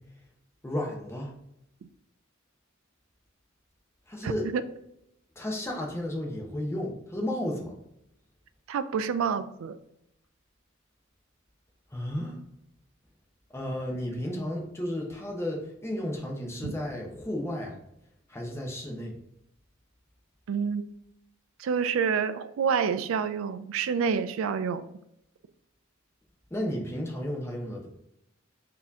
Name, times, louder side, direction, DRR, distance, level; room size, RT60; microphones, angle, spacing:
voice 1, 0.6-1.3 4.1-4.5 5.4-7.7 11.9-12.4 13.5-17.7 18.3-19.1 26.5-28.0, left 1 dB, 15° left, 0 dB, 0.7 m, -33 dB
voice 2, 4.2-4.6 8.7-9.8 16.6-16.8 20.5-20.8 21.6-24.8, right 6 dB, 75° right, 12 dB, 0.3 m, -28 dB
4.1 x 2.8 x 3.5 m, 0.80 s
head